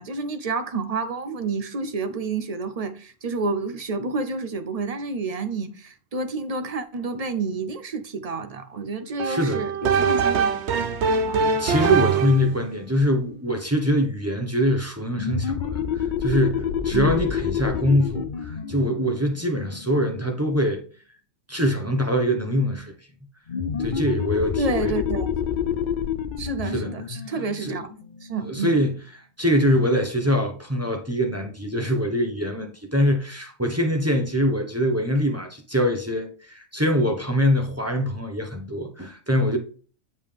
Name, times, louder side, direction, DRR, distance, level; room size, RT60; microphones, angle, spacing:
voice 1, 0.0-10.6 11.3-11.9 16.9-17.3 24.6-25.3 26.4-27.9 28.2-28.7, right 3 dB, 45° right, 0.5 m, -29 dB
voice 2, 9.2-9.6 11.4-20.8 21.5-22.9 23.8-24.9 26.6-26.9 27.6-27.8 28.4-29.0 29.4-39.6, equal, 15° right, 0.9 m, -23 dB
sound 1, 9.2-12.5, right 5 dB, 65° right, 1.0 m, -22 dB
sound 2, 15.1-20.4 23.5-28.8, left 8 dB, 55° left, 0.6 m, -28 dB
7.3 x 5.3 x 3.4 m
omnidirectional pair, 1.3 m